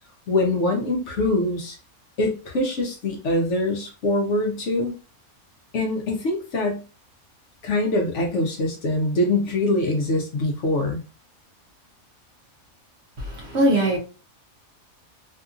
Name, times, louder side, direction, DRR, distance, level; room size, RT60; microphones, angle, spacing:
voice 1, 0.3-1.8 2.2-4.9 5.7-6.8 7.6-11.0, left 2 dB, 60° left, 0.9 m, -23 dB
voice 2, 13.2-14.0, right 1 dB, 60° right, 0.7 m, -21 dB
2.8 x 2.5 x 2.4 m
omnidirectional pair, 1.5 m